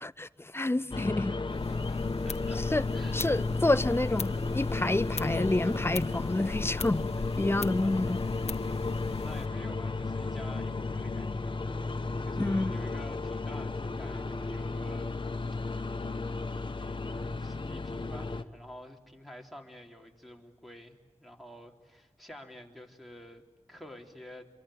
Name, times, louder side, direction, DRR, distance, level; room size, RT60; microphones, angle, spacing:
voice 1, 0.0-1.3 2.7-2.8 3.1-7.1 7.4-8.2 12.4-12.8, left 2 dB, 20° left, 0.8 m, -28 dB
sound 1, 0.9-18.4, left 3 dB, 50° left, 1.2 m, -33 dB
voice 2, 1.1-3.3 7.7-8.7 9.2-11.8 12.2-15.2 16.5-24.5, left 1 dB, ahead, 3.5 m, -50 dB
sound 2, 1.5-9.5, left 4 dB, 80° left, 1.0 m, -39 dB
27.5 x 23.5 x 8.6 m
wide cardioid pair, 60°, 11 cm